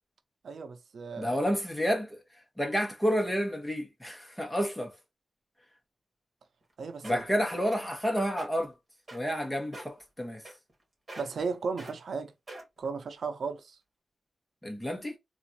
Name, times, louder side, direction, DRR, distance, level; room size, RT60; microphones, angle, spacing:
voice 1, 0.4-1.4 6.8-7.2 11.2-12.3 12.8-13.8, right 5 dB, 85° right, 0.6 m, -35 dB
voice 2, 1.2-2.2 2.6-4.9 7.0-8.7 9.1-10.4 14.6-15.2, equal, 5° left, 1.2 m, -30 dB
sound 1, 6.6-6.7 7.0-7.3 7.7-8.0 8.3-8.5 9.1-9.4 9.7-10.0 10.4-10.8 11.1-11.4 11.8-11.9 12.5-12.8 13.5-13.6, right 1 dB, 30° right, 2.2 m, -44 dB
4.0 x 2.5 x 2.7 m
wide cardioid pair, 115°, 0 cm